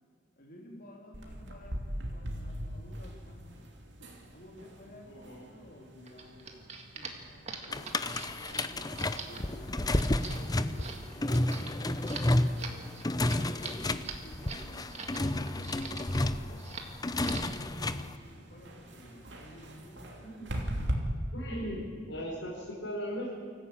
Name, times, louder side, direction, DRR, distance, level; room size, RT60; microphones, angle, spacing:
voice 1, 0.4-3.6 4.3-6.5 6.9-8.0 8.5-8.9 9.2-10.3 10.7-11.9 13.3-16.7 17.3-18.1 18.3-20.4, left 1 dB, 50° left, -1 dB, 2.8 m, -52 dB
sound 1, 1.1-20.9, equal, 65° right, 2.8 m, -43 dB
voice 2, 5.1-5.4 20.2-20.6 21.3-23.3, equal, 85° left, -6 dB, 5.3 m, -38 dB
sound 2, 6.0-15.2 15.5-16.2 16.6-16.9 17.2-17.6, right 5 dB, 35° right, 2.0 m, -44 dB
sound 3, 7.7-18.1, left 1 dB, 20° left, 0.7 m, -31 dB
24.5 x 14.5 x 8.7 m, 2.2 s
head